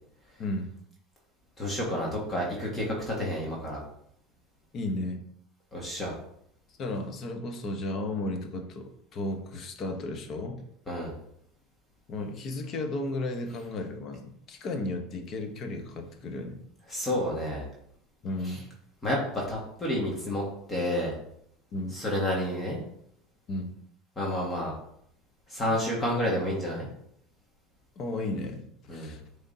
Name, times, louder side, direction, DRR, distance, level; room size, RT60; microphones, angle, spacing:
voice 1, 0.4-0.7 4.7-5.2 6.8-10.6 12.1-16.6 18.2-18.7 21.7-22.0 23.5-23.7 28.0-29.2, left 2 dB, 35° left, 5 dB, 1.0 m, -34 dB
voice 2, 1.6-3.8 5.7-6.1 10.9-11.1 16.9-17.7 18.4-18.6 19.0-20.4 20.7-21.2 21.9-22.8 24.1-24.7 25.5-26.9 28.9-29.1, left 1 dB, 15° left, -3 dB, 1.7 m, -30 dB
10.5 x 3.5 x 2.8 m, 0.70 s
supercardioid pair, 140°, 0 cm